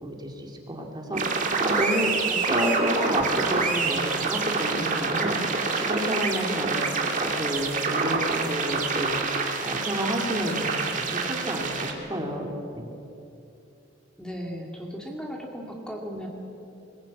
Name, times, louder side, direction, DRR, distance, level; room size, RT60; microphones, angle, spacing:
voice 1, 0.0-6.8 7.2-9.2 9.6-10.7 11.1-12.9, equal, 25° right, 1 dB, 2.7 m, -30 dB
sound 1, 1.1-11.9, right 4 dB, 45° right, 2.4 m, -27 dB
sound 2, 2.6-3.0 3.5-5.1 5.5-6.4 7.0-7.5, left 2 dB, 85° left, 2.1 m, -44 dB
voice 2, 14.2-16.3, equal, 5° left, 0 dB, 2.6 m, -36 dB
21.5 x 20.5 x 8.6 m, 2.8 s
head